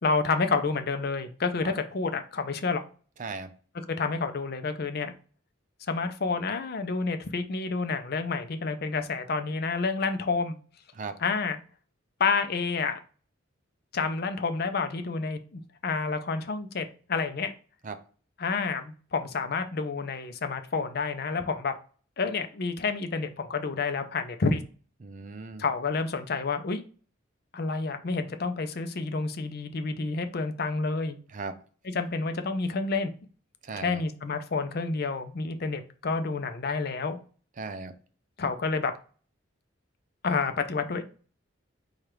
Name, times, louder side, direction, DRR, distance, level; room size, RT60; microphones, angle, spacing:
voice 1, 0.0-2.8 3.9-5.1 5.9-10.6 11.2-11.6 12.2-13.0 13.9-17.5 18.4-21.7 22.2-24.6 25.6-26.8 27.5-31.2 31.8-33.1 33.8-37.2 38.4-38.9 40.2-41.0, left 4 dB, 50° left, 0.5 m, -29 dB
voice 2, 25.0-25.6 31.3-31.6 33.6-34.0 37.6-37.9, right 4 dB, 40° right, 0.4 m, -37 dB
4.5 x 2.4 x 4.8 m
head